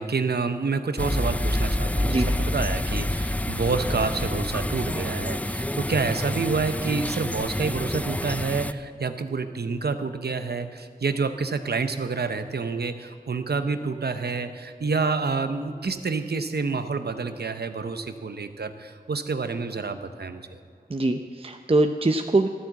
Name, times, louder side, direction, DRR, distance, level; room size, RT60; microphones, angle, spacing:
voice 1, 0.0-20.6, right 4 dB, 85° right, 9 dB, 0.8 m, -28 dB
sound 1, 1.0-8.7, left 1 dB, 10° left, 0.4 m, -27 dB
voice 2, 20.9-22.5, right 2 dB, 35° right, 5 dB, 0.6 m, -23 dB
13.0 x 9.3 x 7.5 m, 2.2 s
wide cardioid pair, 40°, 16 cm